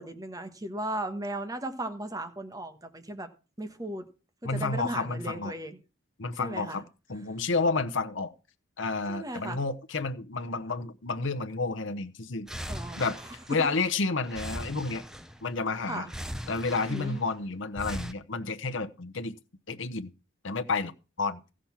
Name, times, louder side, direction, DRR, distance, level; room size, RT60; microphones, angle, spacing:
voice 1, 0.0-3.3 3.6-4.1 4.4-5.8 6.4-6.8 9.1-9.6 12.7-13.1 15.9-16.1 16.9-17.2, right 1 dB, 20° right, 1.3 m, -36 dB
voice 2, 4.4-5.5 6.2-8.3 8.8-12.5 13.0-13.2 13.5-15.0 15.4-16.1 16.5-19.3 19.7-20.1 20.4-20.9 21.2-21.4, left 3 dB, 70° left, 0.9 m, -30 dB
sound 1, 12.5-13.9 14.2-15.5 16.1-17.3 17.8-18.1, equal, 5° right, 0.7 m, -39 dB
15.0 x 6.3 x 5.8 m
head